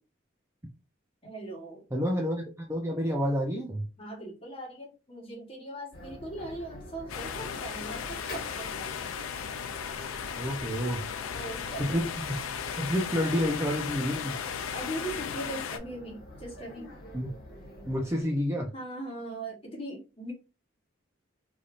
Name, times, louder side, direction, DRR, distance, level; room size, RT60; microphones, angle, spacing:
voice 1, 1.2-1.9 4.0-8.9 11.3-11.8 14.7-16.9 18.5-20.3, right 1 dB, 30° left, 1.1 m, -40 dB
voice 2, 1.9-3.9 10.4-11.1 11.8-12.1 12.8-14.4 17.1-17.3 17.8-18.7, equal, 15° right, 0.5 m, -29 dB
sound 1, 5.9-18.2, left 1 dB, 50° left, 1.3 m, -47 dB
sound 2, 7.1-15.8, left 7 dB, 85° left, 0.4 m, -36 dB
3.3 x 2.7 x 2.4 m
head